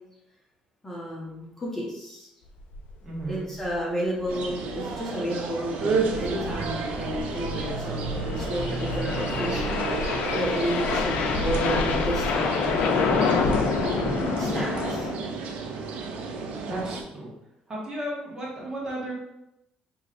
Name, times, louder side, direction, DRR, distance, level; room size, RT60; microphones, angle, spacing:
voice 1, 0.8-2.3 3.3-9.8 10.4-13.0 14.4-15.1, equal, 15° left, -5 dB, 1.1 m, -32 dB
sound 1, 2.7-2.9 3.2-3.3 3.6-3.7 4.2-4.5 5.8-15.1, left 4 dB, 75° left, 0.5 m, -27 dB
voice 2, 3.0-3.5 16.6-17.3 17.7-19.1, right 1 dB, 25° right, -5 dB, 1.5 m, -34 dB
sound 2, 4.3-17.0, right 4 dB, 75° right, 0.6 m, -31 dB
5.4 x 3.0 x 2.5 m, 0.86 s
cardioid pair, 125°, 2 cm